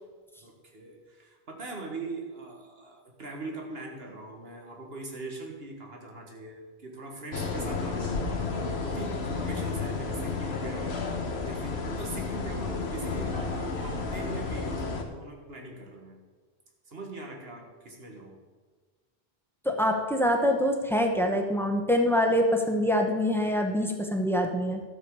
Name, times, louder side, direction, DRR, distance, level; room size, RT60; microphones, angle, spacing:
voice 1, 0.4-10.9 11.4-14.7 15.0-16.2 16.9-18.4, right 2 dB, 70° right, 1 dB, 1.9 m, -41 dB
sound 1, 7.3-15.0, left 4 dB, 80° left, 1.4 m, -32 dB
voice 2, 19.6-24.8, equal, ahead, 3 dB, 1.0 m, -25 dB
12.5 x 7.2 x 4.8 m, 1.4 s
omnidirectional pair, 1.1 m